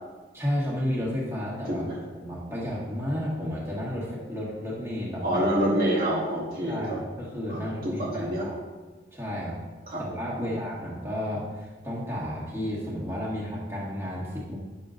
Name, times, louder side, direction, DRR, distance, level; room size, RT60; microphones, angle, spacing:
voice 1, 0.3-1.9 2.1-5.5 6.7-8.5 9.1-9.6 10.0-14.6, equal, 15° right, -7 dB, 1.7 m, -32 dB
voice 2, 5.2-7.0 7.5-8.5 9.9-10.0, equal, 50° right, -5 dB, 1.1 m, -27 dB
9.7 x 6.4 x 2.6 m, 1.3 s
head